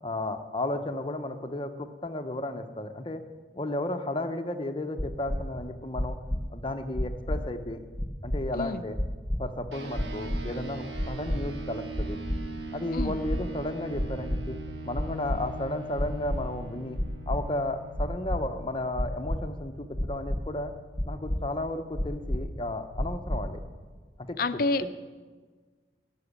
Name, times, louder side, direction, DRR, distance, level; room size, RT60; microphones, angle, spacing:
voice 1, 0.0-3.2 3.5-6.2 6.5-7.8 8.2-9.0 9.4-12.2 12.7-14.6 14.8-17.0 17.3-20.7 21.0-23.6 24.3-24.4 24.8-24.9, left 1 dB, 30° left, 7 dB, 0.8 m, -33 dB
sound 1, 5.0-5.4 5.9-6.4 6.9-7.4 7.9-8.4 8.9-9.4 9.9-10.4 10.9-11.4 11.9-12.4 12.9-13.4 13.9-14.4 14.9-15.4 15.9-16.4 16.9-17.4 17.9-18.4 18.9-19.4 19.9-20.4 20.9-21.4 21.9-22.4 22.9-23.4, equal, 5° left, 1.0 m, -29 dB
sound 2, 9.7-19.4, right 3 dB, 85° right, 1.3 m, -41 dB
voice 2, 24.4-24.9, left 3 dB, 55° left, 11 dB, 0.5 m, -28 dB
13.5 x 7.1 x 9.9 m, 1.4 s
head